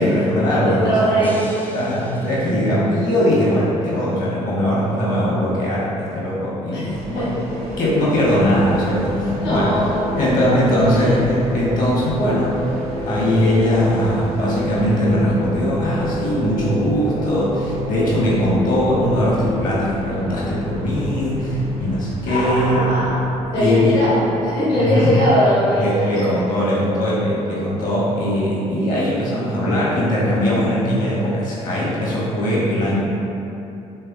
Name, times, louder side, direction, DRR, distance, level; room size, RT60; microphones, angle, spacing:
voice 1, 0.0-1.2 1.7-7.3 7.8-9.8 10.1-12.6 13.0-22.8 23.6-24.0 24.7-25.1 25.7-32.9, equal, 45° left, -7 dB, 1.0 m, -20 dB
voice 2, 0.6-1.3 6.7-7.7 9.4-10.5 10.9-11.2 22.3-26.2, equal, 65° left, -10 dB, 1.2 m, -21 dB
sound 1, 1.2-4.4, equal, 10° left, 0.4 m, -40 dB
sound 2, 6.9-22.7, right 1 dB, 85° right, 0.4 m, -37 dB
sound 3, 8.0-24.7, equal, 85° left, 0.9 m, -30 dB
3.3 x 3.3 x 2.4 m, 2.9 s
figure-of-eight pair, 45°, 19 cm